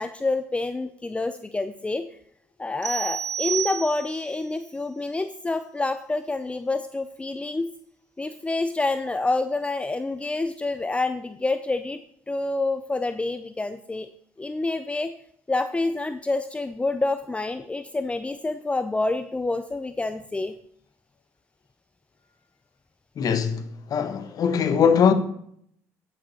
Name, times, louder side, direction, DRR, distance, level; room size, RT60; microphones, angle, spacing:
voice 1, 0.0-2.0 2.6-7.7 8.2-12.0 12.3-14.1 14.4-15.1 15.5-20.5, left 2 dB, 15° left, 0.6 m, -27 dB
sound 1, 2.8-4.4, right 9 dB, 45° right, 2.0 m, -30 dB
voice 2, 23.2-23.6 23.9-25.1, left 7 dB, 50° left, 1.2 m, -21 dB
9.1 x 8.9 x 4.3 m
hypercardioid pair, 65°, 8 cm